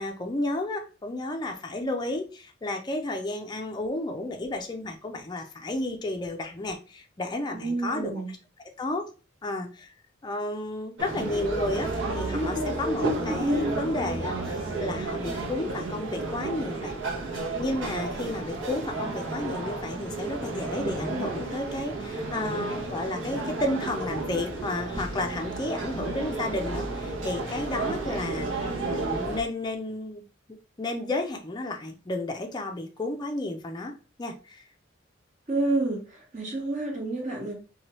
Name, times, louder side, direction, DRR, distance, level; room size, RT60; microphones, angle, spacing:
voice 1, 0.0-8.2 8.8-9.0 9.4-9.9 10.2-11.9 12.1-16.9 17.6-30.2 30.8-34.6, left 2 dB, 20° left, 3 dB, 0.4 m, -32 dB
voice 2, 7.5-8.3 35.5-37.5, right 2 dB, 40° right, 0 dB, 0.9 m, -29 dB
sound 1, 11.0-29.4, right 2 dB, 65° right, 0.8 m, -31 dB
2.9 x 2.3 x 2.9 m, 0.34 s
head